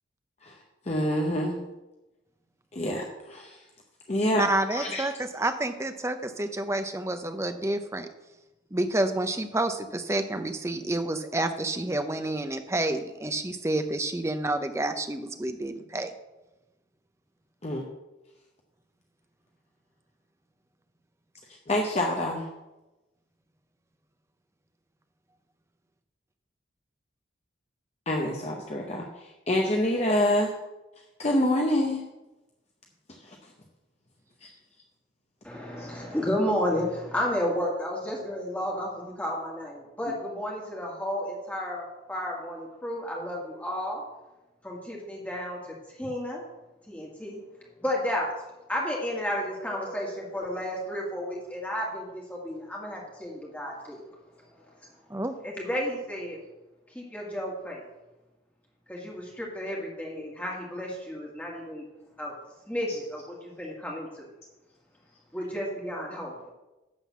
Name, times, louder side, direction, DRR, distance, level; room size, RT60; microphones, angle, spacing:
voice 1, 0.9-1.6 2.7-3.6 4.1-4.4 4.7-5.0 17.6-17.9 21.7-22.5 28.1-30.6 31.2-32.0 33.2-33.4 34.4-34.5 35.8-35.9, left 1 dB, 35° left, 0 dB, 0.8 m, -27 dB
voice 2, 4.3-8.1 8.7-16.1 55.1-55.3, right 2 dB, 15° right, 8 dB, 0.6 m, -29 dB
voice 3, 35.4-44.0 44.6-46.4 46.9-47.4 47.8-48.3 48.7-54.0 54.8-54.9 55.4-56.4 56.9-57.8 58.9-61.9 62.2-62.3 62.7-64.2 65.3-66.3, equal, 10° left, -3 dB, 1.8 m, -32 dB
11.0 x 3.9 x 7.3 m, 1.0 s
head